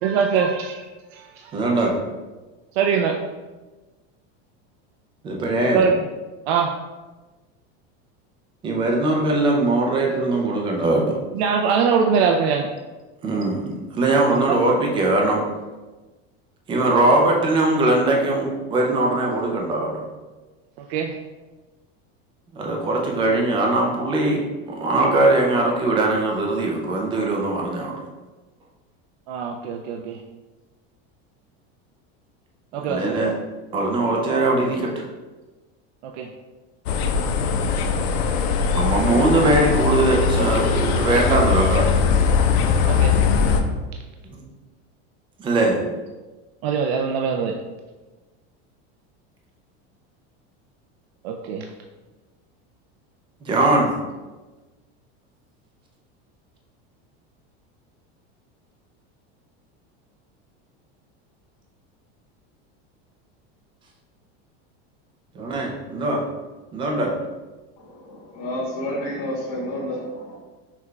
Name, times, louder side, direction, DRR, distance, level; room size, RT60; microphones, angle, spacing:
voice 1, 0.0-1.6 2.7-3.2 5.7-6.1 6.4-6.8 11.3-12.7 14.5-14.6 20.8-21.1 29.3-30.2 32.7-33.2 36.0-36.3 42.9-43.1 46.6-47.6 51.2-51.7, right 6 dB, 75° right, 0.5 m, -23 dB
voice 2, 1.5-1.9 5.2-5.8 8.6-11.2 13.2-15.4 16.7-19.9 22.5-24.4 24.7-28.0 32.9-33.3 33.7-35.0 38.7-41.9 45.4-45.8 53.4-53.9 65.3-66.2 66.7-67.1, right 2 dB, 15° right, 0.4 m, -20 dB
sound 1, 36.9-43.6, left 6 dB, 80° left, 0.6 m, -20 dB
voice 3, 68.3-70.4, left 1 dB, 60° left, 1.1 m, -29 dB
5.8 x 2.3 x 3.1 m
cardioid pair, 170°, 31 cm